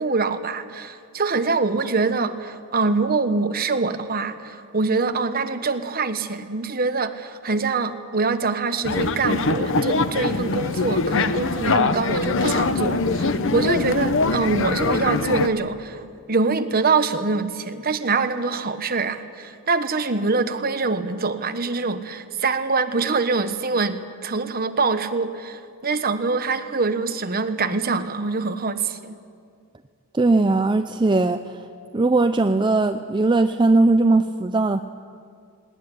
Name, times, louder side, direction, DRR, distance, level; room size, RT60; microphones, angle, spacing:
voice 1, 0.0-16.0 16.3-29.2, right 4 dB, 45° right, 9 dB, 1.2 m, -24 dB
sound 1, 8.8-15.5, left 3 dB, 60° left, 0.9 m, -23 dB
voice 2, 30.1-31.6 31.9-34.8, right 2 dB, 20° right, 8 dB, 0.5 m, -19 dB
19.0 x 18.5 x 10.0 m, 2.2 s
head